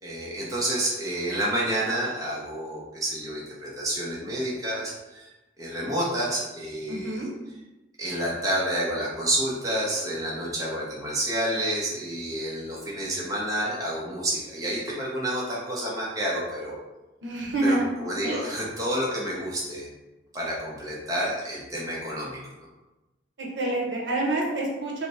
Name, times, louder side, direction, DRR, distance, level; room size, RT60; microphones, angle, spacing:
voice 1, 0.0-5.3 5.6-7.2 8.0-16.8 17.6-19.9 20.3-22.4, right 1 dB, 20° right, -5 dB, 0.7 m, -29 dB
voice 2, 6.9-7.3 17.2-17.9 18.2-18.4 23.4-25.1, right 2 dB, 80° right, -2 dB, 0.8 m, -27 dB
3.2 x 2.1 x 4.0 m, 1.1 s
head